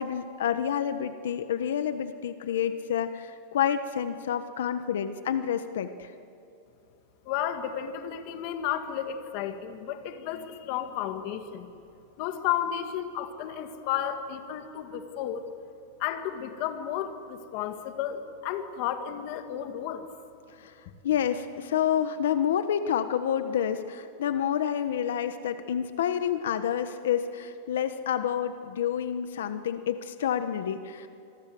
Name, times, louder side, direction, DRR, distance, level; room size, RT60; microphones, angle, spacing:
voice 1, 0.0-6.1 20.6-20.7 21.0-31.1, left 9 dB, 85° left, 10 dB, 1.3 m, -28 dB
voice 2, 7.3-11.7 12.2-15.4 16.0-20.1, left 10 dB, 40° left, 7 dB, 1.9 m, -32 dB
27.0 x 22.0 x 7.8 m, 2.8 s
supercardioid pair, 170°, 0 cm